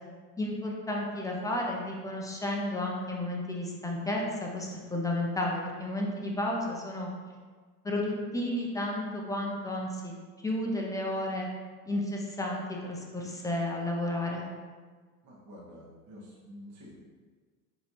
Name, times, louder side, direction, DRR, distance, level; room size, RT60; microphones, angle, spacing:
voice 1, 0.4-7.1 7.8-10.1 10.4-11.5 11.9-14.5, left 1 dB, 10° left, -1 dB, 0.3 m, -32 dB
voice 2, 15.2-17.0, left 1 dB, 35° right, -6 dB, 1.4 m, -49 dB
4.5 x 3.2 x 2.8 m, 1.5 s
hypercardioid pair, 95°, 47 cm